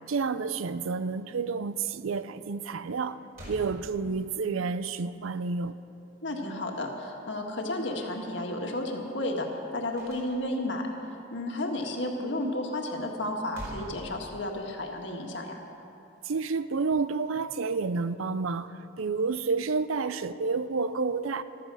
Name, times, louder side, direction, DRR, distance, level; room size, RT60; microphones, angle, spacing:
voice 1, 0.1-3.2 3.5-5.7 16.2-21.4, right 4 dB, 85° right, 0.5 m, -30 dB
sound 1, 2.9-3.0 3.3-4.5 9.9-10.8 13.2-14.8, equal, 45° right, 4.6 m, -45 dB
voice 2, 6.2-9.5 9.7-10.9 11.3-15.6, left 1 dB, 60° left, 1.8 m, -32 dB
14.5 x 13.5 x 6.2 m
head